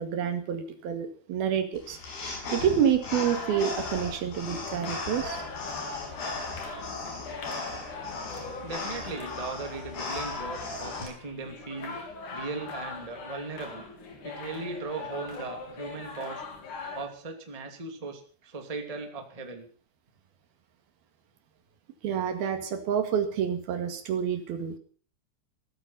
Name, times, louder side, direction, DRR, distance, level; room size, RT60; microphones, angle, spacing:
voice 1, 0.0-2.0 2.5-5.4 22.0-24.8, right 8 dB, 70° right, 8 dB, 3.7 m, -28 dB
sound 1, 1.8-11.0, left 3 dB, 85° left, 7.7 m, -38 dB
sound 2, 3.1-17.1, left 3 dB, 55° left, 4.6 m, -40 dB
voice 2, 8.6-12.0 12.3-13.9 14.2-16.4 16.9-19.7, right 3 dB, 10° right, 5 dB, 2.0 m, -38 dB
17.0 x 14.0 x 5.7 m, 0.41 s
omnidirectional pair, 4.5 m